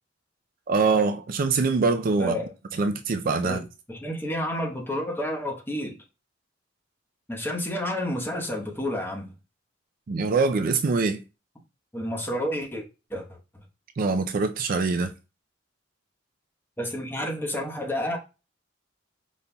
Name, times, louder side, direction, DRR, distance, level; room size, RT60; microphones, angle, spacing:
voice 1, 0.7-2.4 2.8-3.6 10.1-11.2 14.0-15.1, right 4 dB, 45° right, 0.4 m, -24 dB
voice 2, 2.2-2.5 3.4-3.6 3.9-6.0 7.3-9.3 11.9-12.8 13.1-13.3 16.8-18.2, equal, 10° left, 1.0 m, -30 dB
5.3 x 4.1 x 2.2 m
head